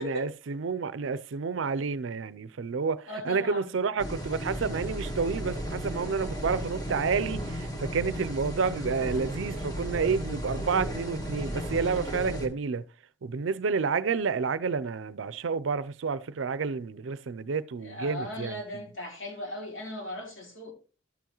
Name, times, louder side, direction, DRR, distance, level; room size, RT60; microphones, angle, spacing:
voice 1, 0.0-12.8 13.2-18.6, right 5 dB, 70° right, 0.5 m, -30 dB
voice 2, 3.1-3.7 17.8-20.7, left 1 dB, 70° left, 3.1 m, -37 dB
sound 1, 4.0-12.5, equal, 20° left, 1.4 m, -35 dB
12.0 x 7.0 x 3.0 m
head